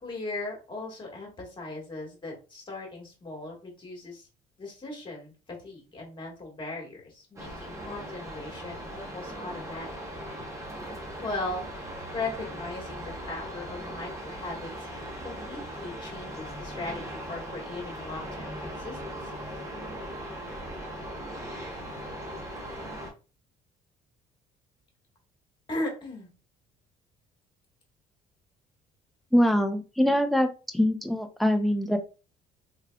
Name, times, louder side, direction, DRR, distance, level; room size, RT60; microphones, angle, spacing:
voice 1, 0.0-4.3 4.6-10.0 11.2-14.7 15.2-19.2 25.7-26.3, left 2 dB, 30° left, -1 dB, 1.6 m, -38 dB
sound 1, 7.4-23.1, equal, 20° right, 1.1 m, -39 dB
voice 2, 29.3-30.5 30.7-32.0, equal, ahead, 5 dB, 0.5 m, -23 dB
3.6 x 3.2 x 2.3 m, 0.34 s
cardioid pair, 110°, 17 cm